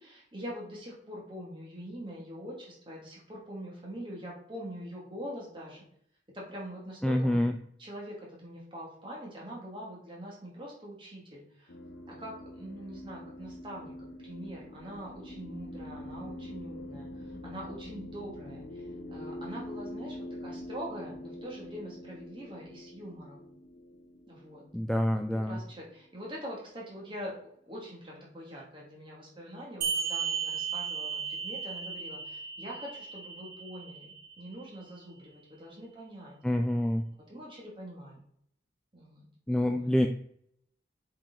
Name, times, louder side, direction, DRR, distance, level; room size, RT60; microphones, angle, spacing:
voice 1, 0.0-5.8 6.3-7.4 7.8-8.2 8.4-11.7 12.1-18.8 19.1-23.4 24.3-24.6 25.1-25.2 25.5-27.4 27.6-36.4 37.3-38.2 38.9-39.3 39.6-39.9, equal, 30° right, -4 dB, 2.5 m, -43 dB
voice 2, 7.0-7.5 24.7-25.6 36.4-37.1 39.5-40.1, left 1 dB, 5° left, 5 dB, 0.3 m, -27 dB
sound 1, 11.7-26.3, left 1 dB, 70° left, 0.9 m, -44 dB
sound 2, 29.8-34.8, right 7 dB, 55° right, 1.5 m, -35 dB
7.3 x 4.8 x 3.9 m, 0.67 s
head